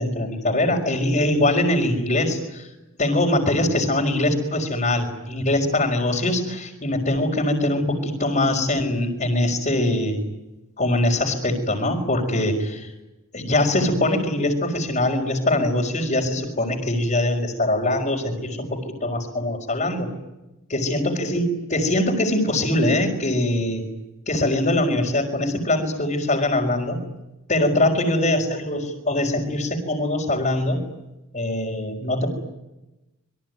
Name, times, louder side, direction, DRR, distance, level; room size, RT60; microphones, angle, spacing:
voice 1, 0.0-2.7 3.0-10.2 10.8-12.9 13.3-20.1 20.7-23.8 24.3-27.0 27.5-30.8 31.3-32.3, left 1 dB, 40° left, -4 dB, 4.5 m, -22 dB
26.5 x 22.5 x 9.4 m, 1.0 s
head